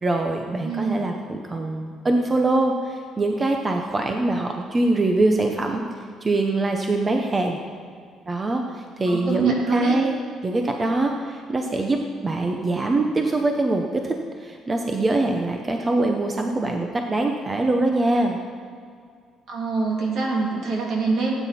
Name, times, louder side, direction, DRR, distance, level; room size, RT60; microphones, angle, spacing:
voice 1, 0.0-5.8 6.2-7.6 8.3-18.4, right 2 dB, 20° right, 3 dB, 0.8 m, -23 dB
voice 2, 0.6-1.0 9.1-9.9 19.5-21.3, right 4 dB, 65° right, -2 dB, 3.0 m, -24 dB
17.0 x 9.1 x 4.3 m, 2.1 s
cardioid pair, 145°, 0 cm